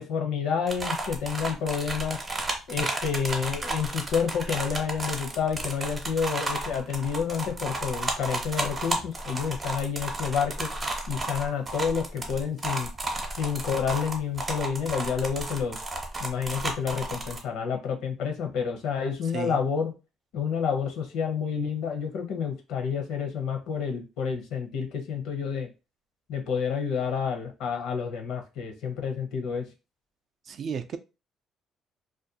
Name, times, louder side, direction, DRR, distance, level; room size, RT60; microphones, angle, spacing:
voice 1, 0.0-2.2 2.7-10.7 11.1-12.9 13.4-15.8 16.2-19.9 20.3-25.7 26.3-29.7, left 7 dB, 80° left, 0.7 m, -29 dB
sound 1, 0.7-17.4, right 2 dB, 25° right, 0.7 m, -32 dB
voice 2, 30.5-31.0, right 7 dB, 50° right, 0.3 m, -33 dB
2.4 x 2.2 x 2.7 m
cardioid pair, 120°, 0 cm